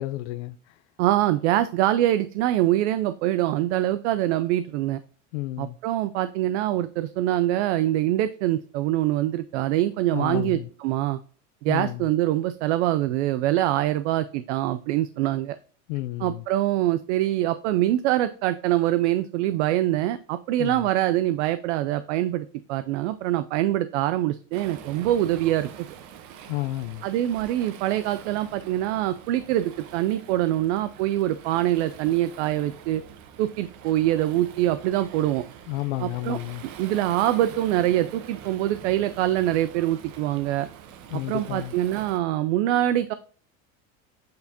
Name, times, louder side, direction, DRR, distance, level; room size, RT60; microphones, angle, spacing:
voice 1, 0.0-0.8 5.3-5.8 10.1-10.7 11.7-12.1 15.9-16.4 20.6-20.9 26.4-27.1 35.7-36.6 41.1-41.8, left 16 dB, 85° left, 0.5 m, -31 dB
voice 2, 1.0-5.0 5.6-11.2 11.6-15.6 16.2-25.9 27.0-33.0 33.4-35.4 36.0-36.4 36.8-40.7 41.3-43.1, right 13 dB, 80° right, 0.5 m, -24 dB
Waves surf, 24.5-42.2, right 8 dB, 55° right, 1.0 m, -44 dB
8.4 x 4.2 x 2.7 m
supercardioid pair, 110°, 34 cm